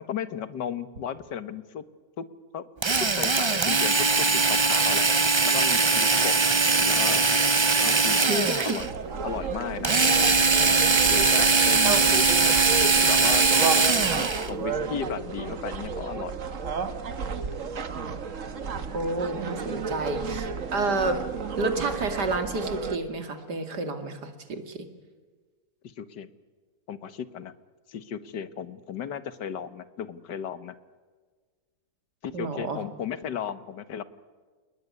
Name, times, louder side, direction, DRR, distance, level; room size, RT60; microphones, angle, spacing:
voice 1, 0.0-1.8 2.2-2.3 2.5-2.6 3.0-5.1 5.4-7.3 7.8-8.9 9.2-10.0 11.1-12.3 12.8-16.6 26.0-26.3 26.9-27.5 27.9-30.7 32.2-34.0, left 8 dB, 90° left, 12 dB, 1.9 m, -35 dB
Drill, 2.8-8.9 9.8-14.5, right 4 dB, 35° right, 0.4 m, -21 dB
voice 2, 8.2-8.8 11.8-12.0 18.9-21.2 21.6-24.9 32.3-32.8, right 3 dB, 75° right, 6 dB, 3.0 m, -29 dB
sound 1, 8.8-23.0, right 5 dB, 50° right, 1.6 m, -33 dB
28.5 x 20.0 x 9.7 m, 1.4 s
omnidirectional pair, 1.8 m